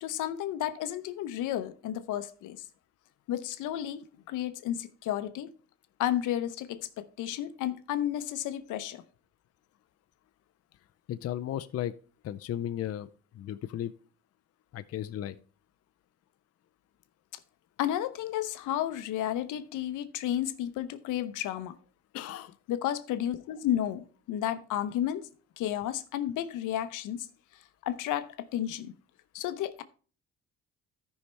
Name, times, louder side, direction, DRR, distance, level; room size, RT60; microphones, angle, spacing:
voice 1, 0.0-2.6 3.3-5.5 6.0-9.0 17.8-21.7 22.7-25.2 25.6-27.3 27.9-28.9 29.3-29.8, left 11 dB, 85° left, 0.8 m, -32 dB
voice 2, 11.1-11.9 12.2-13.1 13.3-13.9 14.7-15.4 22.1-22.5, left 11 dB, 55° left, 0.5 m, -35 dB
13.5 x 5.6 x 3.3 m
cardioid pair, 90°, 30 cm